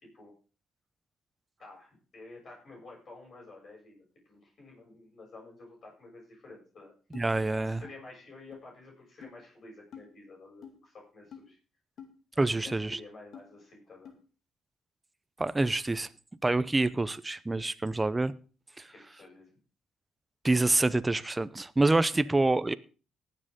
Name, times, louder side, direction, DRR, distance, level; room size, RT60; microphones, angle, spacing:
voice 1, 1.6-6.9 7.6-11.6 12.6-14.1 18.8-19.5, left 2 dB, 50° left, 7.4 m, -51 dB
sound 1, 7.1-7.3 7.8-7.9 8.5-8.6 9.2-9.4 9.9-10.1 10.6-10.8 11.3-11.5 12.0-12.1 12.7-12.8 13.3-13.4 14.1-14.2, left 8 dB, 65° left, 2.4 m, -47 dB
voice 2, 7.1-7.8 12.4-13.0 15.4-16.1 16.4-18.3 18.8-18.9 20.4-22.7, right 2 dB, 15° right, 0.7 m, -26 dB
19.5 x 7.7 x 3.7 m
cardioid pair, 90°, 0 cm